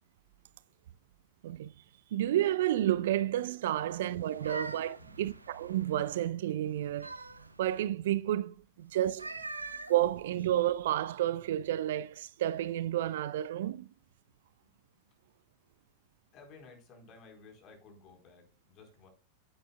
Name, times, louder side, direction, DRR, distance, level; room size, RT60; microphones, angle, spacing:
voice 1, 2.1-7.1 7.6-9.3 9.9-13.9, right 12 dB, 55° right, 0.3 m, -31 dB
sound 1, 4.1-6.2 6.7-7.9 9.0-10.8, right 3 dB, 80° right, 1.0 m, -44 dB
voice 2, 4.4-5.4 8.9-9.0 9.3-9.9 14.6-15.3 16.3-19.1, left 3 dB, 35° left, 4.2 m, -57 dB
10.5 x 8.6 x 2.3 m
figure-of-eight pair, 90°, 0 cm